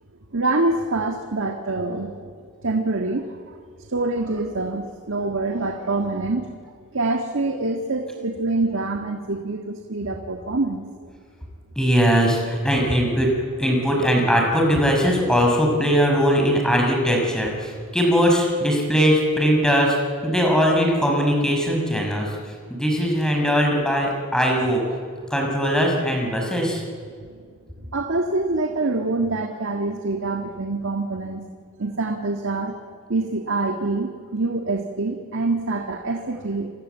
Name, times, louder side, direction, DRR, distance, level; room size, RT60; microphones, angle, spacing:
voice 1, 0.3-2.3 2.6-3.6 3.9-6.5 6.9-10.9 27.3-27.4 27.9-31.5 31.8-32.8 33.1-36.7, right 2 dB, 60° right, 4 dB, 1.7 m, -25 dB
voice 2, 11.8-13.3 13.6-20.0 20.2-22.3 22.7-24.8 25.3-26.8, equal, 5° left, 0 dB, 6.0 m, -20 dB
28.0 x 24.5 x 8.2 m, 2.1 s
head